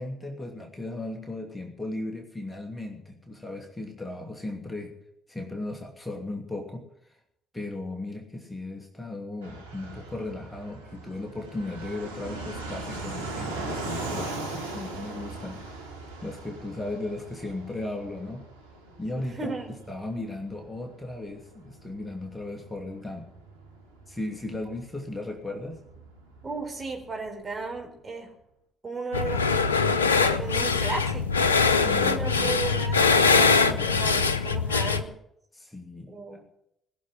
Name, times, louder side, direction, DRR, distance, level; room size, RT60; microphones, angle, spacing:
voice 1, 0.0-4.9 5.3-6.8 7.5-15.6 16.2-18.5 19.0-19.5 19.9-23.3 24.1-25.8 31.6-32.6 33.7-34.0 35.5-36.1, left 2 dB, 15° left, 2 dB, 2.8 m, -36 dB
Fixed-wing aircraft airplane, 9.4-27.8, right 2 dB, 90° right, 1.7 m, -40 dB
voice 2, 19.2-19.7 26.4-28.3 28.8-29.5 30.2-31.6 32.0-35.1 36.1-36.4, right 3 dB, 30° right, 2 dB, 4.3 m, -35 dB
sound 1, 29.1-35.0, left 4 dB, 85° left, 0.6 m, -22 dB
20.5 x 7.0 x 9.1 m, 0.78 s
figure-of-eight pair, 45°, 0 cm